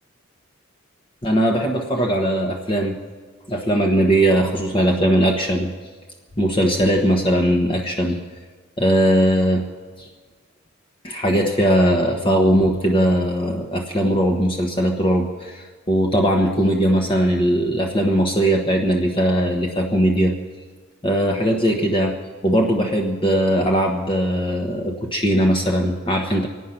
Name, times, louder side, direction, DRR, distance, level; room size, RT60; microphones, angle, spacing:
voice 1, 1.2-2.9 3.5-5.7 6.4-8.2 8.8-9.6 10.0-10.1 11.0-20.3 21.0-22.2 22.4-26.5, equal, 25° left, 1 dB, 1.1 m, -19 dB
26.5 x 9.3 x 5.8 m, 1.4 s
head